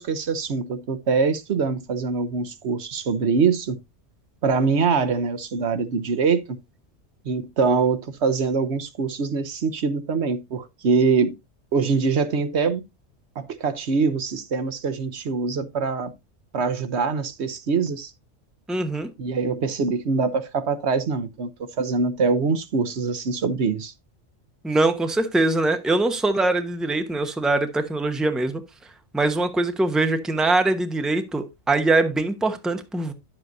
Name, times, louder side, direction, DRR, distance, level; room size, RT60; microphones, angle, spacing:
voice 1, 0.0-3.8 4.4-6.6 7.2-11.4 11.7-12.8 13.4-16.1 16.5-18.1 19.2-23.9, right 5 dB, 70° right, 1.1 m, -24 dB
voice 2, 18.7-19.1 24.6-28.6 29.1-33.1, right 2 dB, ahead, 0.8 m, -22 dB
10.5 x 7.4 x 2.7 m
omnidirectional pair, 1.2 m